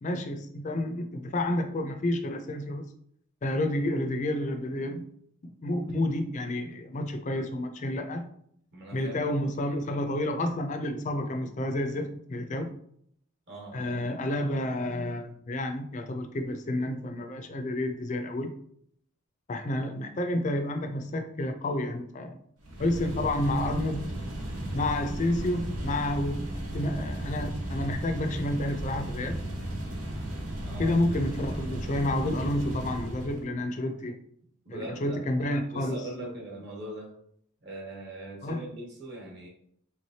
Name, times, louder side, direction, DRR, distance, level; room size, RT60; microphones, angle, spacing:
voice 1, 0.0-2.9 3.4-5.1 5.4-8.3 8.9-12.7 13.7-18.5 19.5-22.4 22.8-24.0 24.7-26.5 26.7-29.4 30.8-34.2 34.7-36.3 38.4-38.6, left 1 dB, 35° left, 6 dB, 0.4 m, -30 dB
voice 2, 8.7-9.2 13.5-13.9 30.6-31.0 34.6-37.1 37.6-39.5, right 1 dB, 50° right, -2 dB, 1.2 m, -41 dB
sound 1, 22.6-33.5, right 1 dB, 80° right, 0.9 m, -35 dB
3.4 x 3.1 x 2.7 m, 0.68 s
head